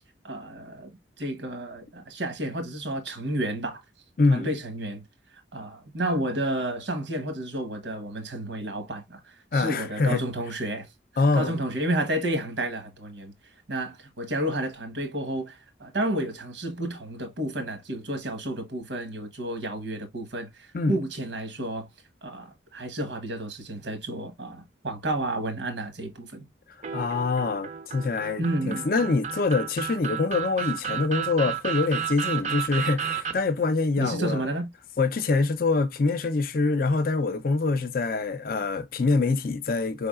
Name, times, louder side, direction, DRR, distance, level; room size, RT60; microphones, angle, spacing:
voice 1, 0.2-0.9 1.2-3.8 4.3-5.0 5.5-10.9 11.3-13.3 13.7-21.9 22.2-26.4 28.4-28.8 34.0-34.7, right 1 dB, 80° right, 1.1 m, -31 dB
voice 2, 4.2-4.5 9.5-10.2 11.2-11.6 20.7-21.0 26.9-34.5 35.0-40.1, left 3 dB, 50° left, 0.5 m, -25 dB
sound 1, 26.8-33.3, right 8 dB, 40° right, 0.5 m, -32 dB
4.6 x 3.4 x 2.3 m
head